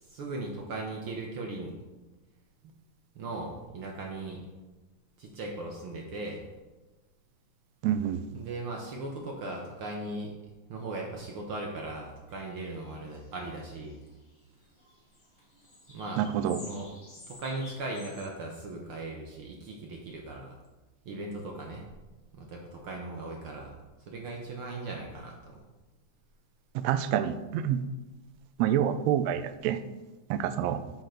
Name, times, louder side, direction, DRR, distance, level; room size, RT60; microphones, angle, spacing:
voice 1, 0.0-1.7 3.1-4.4 5.2-6.4 8.3-10.3 10.7-14.0 15.9-16.2 16.6-16.9 17.3-20.5 21.0-21.8 22.3-23.7 24.0-25.6, right 2 dB, 60° right, 0 dB, 1.5 m, -38 dB
voice 2, 7.8-8.2 16.2-16.6 26.7-27.8 28.6-29.8 30.3-30.8, right 10 dB, 80° right, 11 dB, 1.5 m, -27 dB
sound 1, 12.3-14.4 14.6-18.3, left 2 dB, 35° left, 3.3 m, -51 dB
8.8 x 5.7 x 5.1 m, 1.2 s
omnidirectional pair, 3.5 m